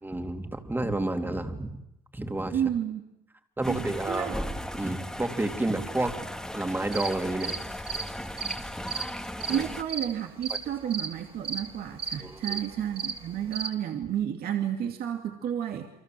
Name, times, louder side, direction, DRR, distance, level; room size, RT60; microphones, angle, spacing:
voice 1, 0.0-1.8 2.1-2.6 3.6-4.5 4.7-6.2 6.5-7.6 9.5-9.7 12.2-12.6, right 2 dB, 10° right, 6 dB, 2.8 m, -30 dB
voice 2, 2.5-3.0 3.7-4.4 9.5-15.9, right 9 dB, 65° right, 4 dB, 2.5 m, -31 dB
sound 1, 3.6-9.8, left 1 dB, 5° left, 1.9 m, -37 dB
sound 2, 6.7-13.7, right 6 dB, 35° right, 3.7 m, -35 dB
29.0 x 24.0 x 7.7 m, 0.84 s
cardioid pair, 110°, 17 cm